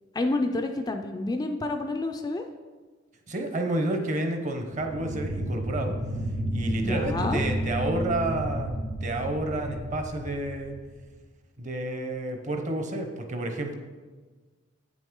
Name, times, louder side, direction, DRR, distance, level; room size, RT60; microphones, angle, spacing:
voice 1, 0.1-2.4 6.8-7.4, left 2 dB, 20° left, 5 dB, 0.4 m, -29 dB
voice 2, 3.3-6.0 6.5-8.7 9.0-10.8 11.6-13.8, right 1 dB, 40° right, 5 dB, 0.8 m, -30 dB
sound 1, 4.7-11.2, right 1 dB, 75° right, 1.0 m, -32 dB
8.2 x 6.1 x 3.7 m, 1.3 s
head